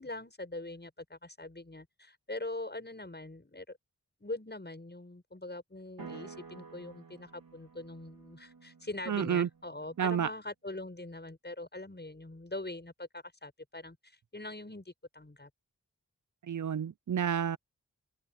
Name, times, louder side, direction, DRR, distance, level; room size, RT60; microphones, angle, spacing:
voice 1, 0.0-3.8 4.2-15.5, left 2 dB, 30° left, 7.7 m, -43 dB
sound 1, 6.0-10.1, right 5 dB, 85° right, 4.7 m, -51 dB
voice 2, 9.1-9.5 10.0-10.3 16.4-17.6, right 8 dB, 60° right, 0.6 m, -30 dB
open air
cardioid pair, 50°, 34 cm